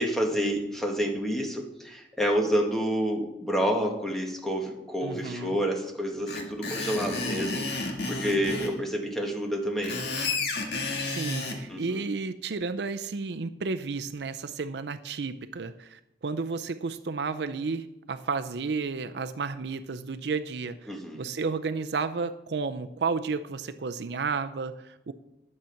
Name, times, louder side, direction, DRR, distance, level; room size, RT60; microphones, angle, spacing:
voice 1, 0.0-10.0 11.7-12.1 20.9-21.2, equal, ahead, 1 dB, 1.7 m, -29 dB
voice 2, 5.0-5.6 11.0-25.1, right 4 dB, 70° right, 11 dB, 0.5 m, -32 dB
Screech, 6.3-8.7 9.6-11.6, left 3 dB, 65° left, 2.0 m, -31 dB
12.0 x 7.5 x 5.8 m, 0.89 s
head